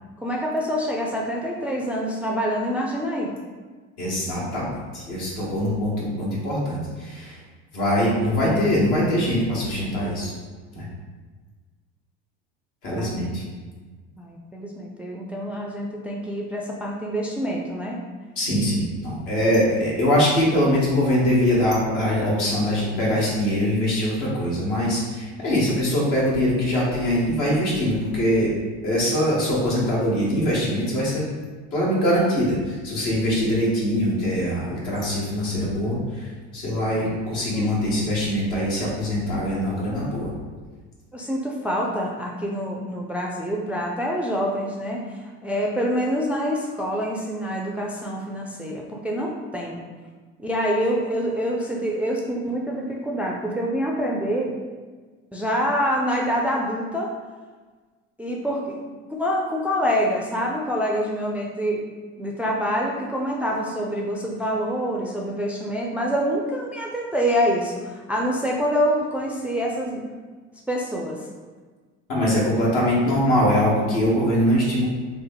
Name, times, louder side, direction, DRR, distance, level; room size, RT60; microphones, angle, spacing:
voice 1, 0.2-3.3 13.0-13.3 14.2-18.0 37.5-37.7 41.1-49.8 50.4-54.5 55.3-57.1 58.2-61.9 62.2-70.0 70.7-71.3, equal, 5° right, -2 dB, 0.4 m, -26 dB
voice 2, 4.0-7.4 7.7-10.3 10.7-10.8 12.8-13.4 18.4-28.5 28.8-31.2 31.7-40.3 72.1-74.9, equal, 65° left, -5 dB, 1.4 m, -22 dB
3.3 x 2.1 x 3.6 m, 1.4 s
hypercardioid pair, 75°, 33 cm